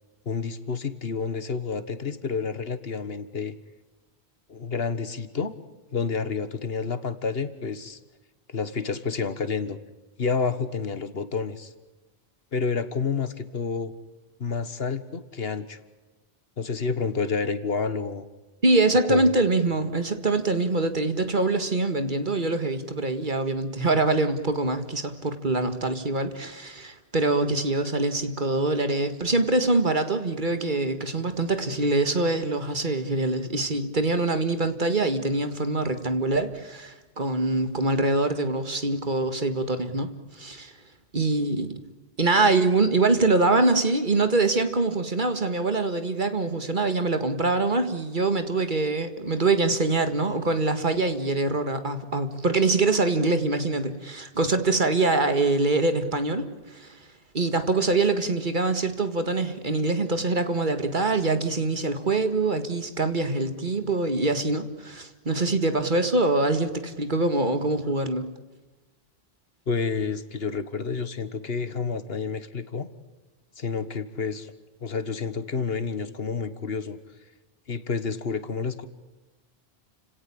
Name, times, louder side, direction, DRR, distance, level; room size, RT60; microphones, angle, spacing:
voice 1, 0.3-3.6 4.5-5.5 5.9-8.0 8.5-9.8 10.2-11.7 12.5-13.9 14.4-15.8 16.6-18.3 19.1-19.3 69.7-72.9 73.6-74.5 74.8-77.0 77.7-78.9, left 5 dB, 70° left, 13 dB, 1.7 m, -29 dB
voice 2, 18.6-40.7 41.1-41.7 42.2-57.0 57.3-68.3, right 2 dB, 50° right, 9 dB, 2.1 m, -24 dB
30.0 x 17.5 x 8.7 m, 1.2 s
omnidirectional pair, 1.1 m